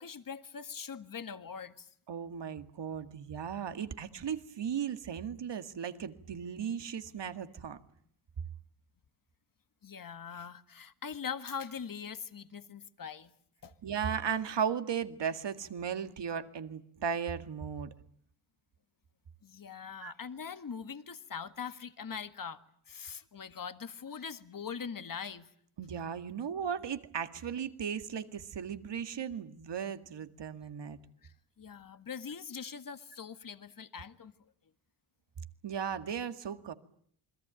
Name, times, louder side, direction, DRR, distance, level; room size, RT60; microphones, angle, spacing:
voice 1, 0.0-1.9 9.8-13.3 13.6-13.7 19.4-22.6 22.9-25.5 31.2-34.3, left 6 dB, 40° left, 1.8 m, -42 dB
voice 2, 2.1-7.8 13.8-17.9 20.0-20.1 25.8-31.0 35.6-36.7, right 7 dB, 55° right, 2.1 m, -36 dB
28.5 x 21.5 x 9.1 m
cardioid pair, 80°, 49 cm